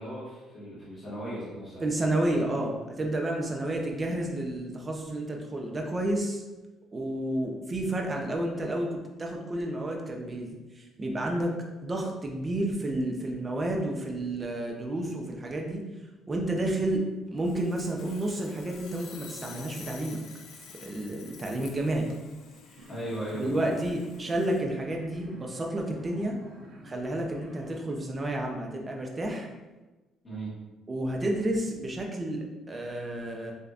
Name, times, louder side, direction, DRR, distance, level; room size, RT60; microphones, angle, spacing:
voice 1, 0.0-1.8 22.9-23.7 30.2-30.5, right 1 dB, 25° left, -9 dB, 1.4 m, -37 dB
voice 2, 1.8-6.4 6.9-15.8 16.3-20.2 20.8-22.1 23.4-26.4 26.8-29.5 30.9-33.5, right 1 dB, 20° right, 1 dB, 0.6 m, -31 dB
Sawing, 17.4-24.6, left 6 dB, 70° left, 0.5 m, -49 dB
sound 1, 22.8-27.8, equal, 80° right, 1.2 m, -49 dB
6.6 x 2.7 x 2.4 m, 1.1 s
cardioid pair, 155°, 0 cm